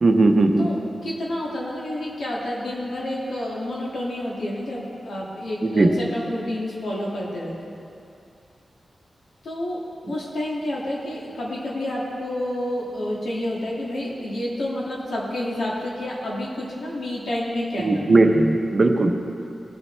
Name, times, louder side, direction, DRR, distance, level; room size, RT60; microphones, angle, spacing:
voice 1, 0.0-0.7 5.7-5.9 17.8-19.1, right 2 dB, 35° right, 4 dB, 0.8 m, -17 dB
voice 2, 0.6-7.7 9.4-9.8 10.1-18.1, left 1 dB, 80° left, -5 dB, 2.1 m, -29 dB
19.0 x 7.2 x 3.3 m, 2.6 s
wide cardioid pair, 160°, 0 cm